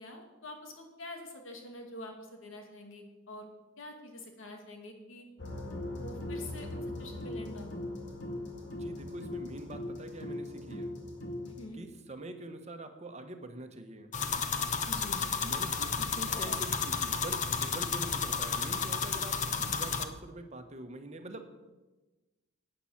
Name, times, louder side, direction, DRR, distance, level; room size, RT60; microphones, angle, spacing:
voice 1, 0.0-3.5 3.8-5.2 6.0-7.8 11.4-11.8 14.8-15.3 19.5-19.8, left 1 dB, 80° left, 3 dB, 2.3 m, -46 dB
sound 1, 5.4-11.7, left 1 dB, 60° left, 2.0 m, -40 dB
voice 2, 8.7-10.9 11.7-14.1 15.4-21.5, right 1 dB, 35° right, 6 dB, 1.3 m, -44 dB
sound 2, 14.1-20.0, left 6 dB, 40° left, 0.8 m, -32 dB
11.0 x 9.0 x 7.3 m, 1.2 s
head